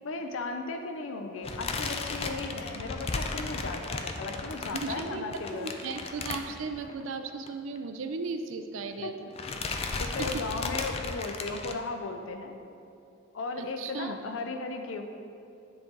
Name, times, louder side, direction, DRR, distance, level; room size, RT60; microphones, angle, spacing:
voice 1, 0.0-5.7 9.0-9.2 10.0-12.6 13.3-15.0, left 3 dB, 85° left, 6 dB, 0.5 m, -36 dB
sound 1, 1.4-7.0 7.3-7.5 7.8-7.9 8.8-9.1 9.4-11.7, left 3 dB, 30° left, 0.4 m, -35 dB
voice 2, 4.7-9.3 10.2-10.4 13.6-14.2, right 4 dB, 90° right, 7 dB, 0.4 m, -36 dB
9.6 x 3.9 x 3.8 m, 2.6 s
head